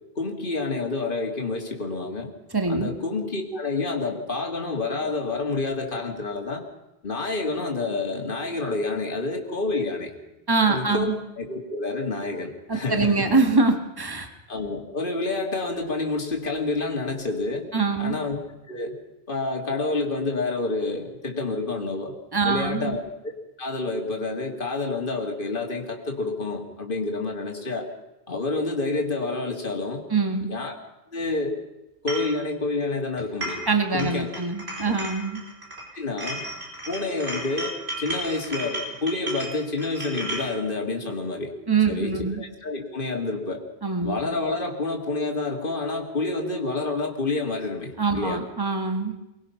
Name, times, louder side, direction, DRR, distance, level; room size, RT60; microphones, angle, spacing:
voice 1, 0.2-2.3 2.7-6.6 7.0-10.1 10.7-11.1 11.4-13.3 14.5-17.7 18.0-18.4 18.7-19.0 19.3-22.1 22.4-23.3 23.6-27.9 28.3-30.0 30.4-30.7 31.1-31.5 32.0-33.6 33.9-34.3 34.9-35.0 35.9-36.4 36.9-41.5 41.9-43.6 44.0-48.4, left 3 dB, 50° left, 2 dB, 2.5 m, -28 dB
voice 2, 2.5-2.9 10.5-11.2 12.7-14.3 17.7-18.2 22.3-23.0 30.1-30.5 33.7-35.4 41.7-42.4 43.8-44.2 48.0-49.1, right 4 dB, 20° right, 5 dB, 1.8 m, -24 dB
sound 1, 32.1-32.3 33.2-33.7 34.0-35.9 36.2-40.5, right 1 dB, 60° right, 5.2 m, -34 dB
24.0 x 19.5 x 5.8 m, 0.96 s
omnidirectional pair, 1.2 m